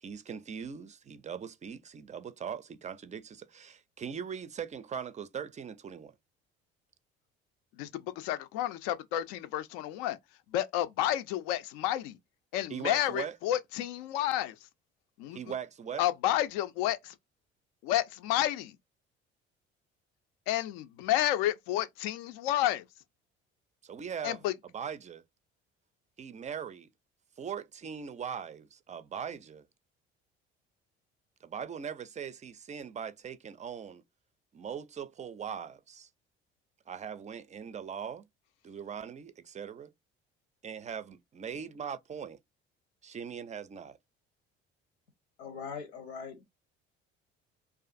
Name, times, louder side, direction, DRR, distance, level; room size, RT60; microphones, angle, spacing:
voice 1, 0.0-6.1 12.7-13.4 15.3-16.0 23.8-25.2 26.2-26.9 27.4-29.6 31.4-34.0 34.5-36.1 36.9-38.3 38.6-39.9 40.6-42.4 43.0-44.0, right 7 dB, 25° right, 0.4 m, -40 dB
voice 2, 7.8-10.2 10.5-12.2 12.5-14.5 15.2-15.4 16.0-17.1 17.8-18.7 20.5-22.8 24.2-24.5, left 13 dB, 70° left, 0.5 m, -30 dB
voice 3, 45.4-46.4, left 6 dB, 90° left, 0.8 m, -41 dB
2.4 x 2.4 x 2.4 m
hypercardioid pair, 60°, 31 cm